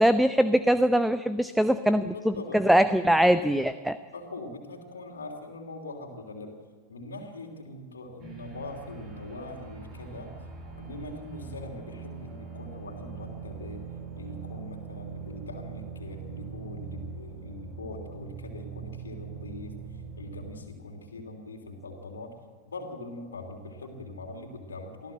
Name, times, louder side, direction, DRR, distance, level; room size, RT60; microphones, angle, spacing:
voice 1, 0.0-4.0, equal, ahead, 12 dB, 0.7 m, -22 dB
voice 2, 1.8-2.6 4.1-6.5 6.9-10.3 10.8-13.8 14.1-22.4 22.6-25.1, left 2 dB, 70° left, 2 dB, 3.1 m, -42 dB
sound 1, 8.2-20.6, right 6 dB, 40° right, 5.0 m, -42 dB
24.5 x 15.5 x 7.8 m, 1.5 s
figure-of-eight pair, 90°, 0 cm